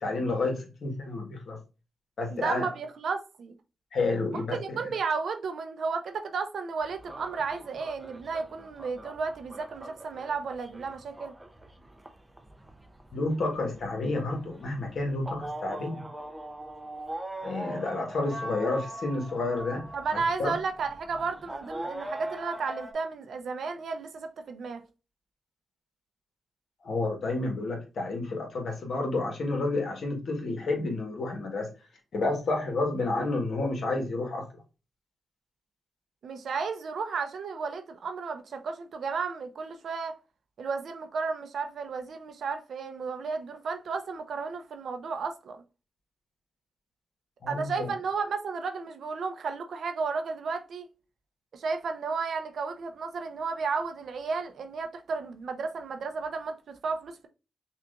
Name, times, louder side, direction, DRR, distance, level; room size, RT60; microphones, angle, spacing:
voice 1, 0.0-1.6 2.2-2.7 3.9-4.8 13.1-16.0 17.4-19.8 20.4-20.5 26.8-31.7 32.1-34.4 47.4-47.9, left 2 dB, 65° left, 1.4 m, -30 dB
voice 2, 2.3-3.6 4.3-11.3 19.9-24.8 36.2-40.1 40.6-45.6 47.5-50.9 51.5-57.3, right 5 dB, 70° right, 0.6 m, -33 dB
sound 1, 6.8-22.9, right 1 dB, 15° right, 0.6 m, -42 dB
5.8 x 2.5 x 2.4 m
cardioid pair, 70°, 0 cm